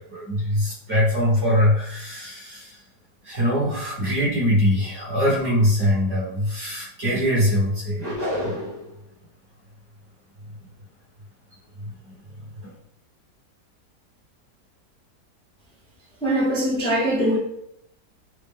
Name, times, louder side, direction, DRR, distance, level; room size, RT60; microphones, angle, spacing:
voice 1, 0.0-2.8 3.2-8.7 11.8-12.1 12.4-12.7, equal, 45° right, -6 dB, 1.7 m, -23 dB
sound 1, 8.0-8.9, left 1 dB, 15° right, 1.2 m, -28 dB
voice 2, 16.2-17.4, right 1 dB, 5° left, -7 dB, 0.8 m, -22 dB
4.1 x 2.4 x 3.6 m, 0.74 s
omnidirectional pair, 1.8 m